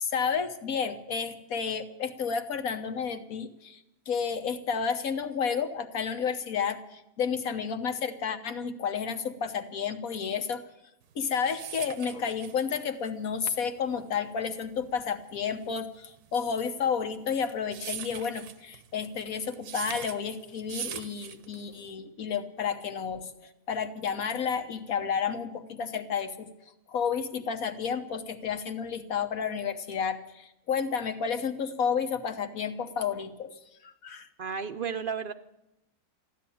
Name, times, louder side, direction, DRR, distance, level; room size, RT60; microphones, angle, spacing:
voice 1, 0.0-10.6 11.1-23.3 23.7-26.5 26.9-33.5 33.8-34.3, left 6 dB, 70° left, 7 dB, 1.6 m, -31 dB
sound 1, 11.1-21.9, right 9 dB, 85° right, 1.3 m, -42 dB
voice 2, 34.4-35.3, right 6 dB, 50° right, 8 dB, 0.6 m, -33 dB
14.5 x 11.0 x 8.5 m, 0.87 s
omnidirectional pair, 1.6 m